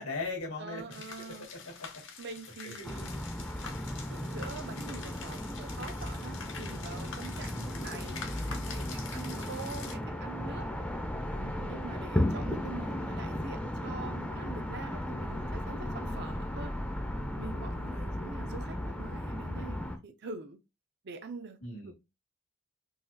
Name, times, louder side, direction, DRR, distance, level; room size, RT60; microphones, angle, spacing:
voice 1, 0.0-2.2 2.6-2.9 17.9-18.2 21.6-21.9, left 3 dB, 90° left, 1.5 m, -41 dB
voice 2, 0.6-1.5 2.2-3.2 4.1-10.7 11.4-16.8 17.4-20.6 21.0-21.6 21.8-21.9, right 4 dB, 50° right, 0.5 m, -45 dB
sound 1, 0.9-10.0, left 6 dB, 55° left, 0.7 m, -46 dB
sound 2, 2.8-20.0, left 1 dB, 5° left, 0.5 m, -35 dB
4.0 x 2.8 x 2.7 m
head